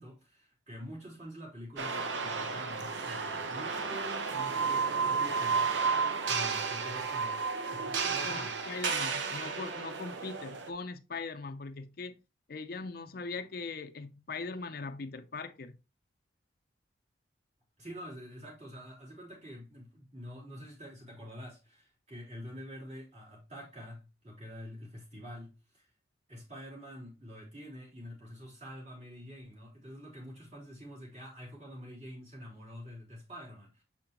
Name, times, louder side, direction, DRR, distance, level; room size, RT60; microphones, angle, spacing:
voice 1, 0.0-5.7 6.3-8.5 17.8-25.9 26.3-33.8, equal, 35° right, 3.3 m, -46 dB
sound 1, 1.8-10.7, right 5 dB, 75° right, 0.8 m, -32 dB
voice 2, 8.0-12.2 12.5-15.8, left 4 dB, 50° left, 0.5 m, -40 dB
7.0 x 5.1 x 2.9 m
head